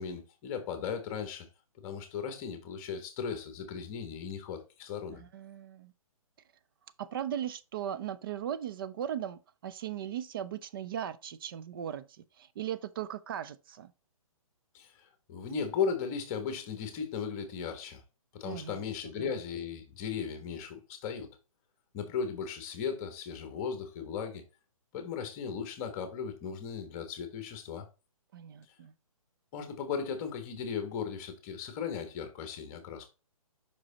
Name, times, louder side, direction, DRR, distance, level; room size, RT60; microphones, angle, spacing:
voice 1, 0.0-1.5 1.8-5.2 14.7-18.0 18.3-21.4 21.9-24.4 24.9-27.9 29.5-33.1, left 6 dB, 25° left, 1.3 m, -36 dB
voice 2, 5.1-5.9 7.0-13.9 18.4-19.3 28.3-28.9, right 10 dB, 40° right, 0.5 m, -38 dB
5.4 x 4.9 x 4.0 m
hypercardioid pair, 145°, 19 cm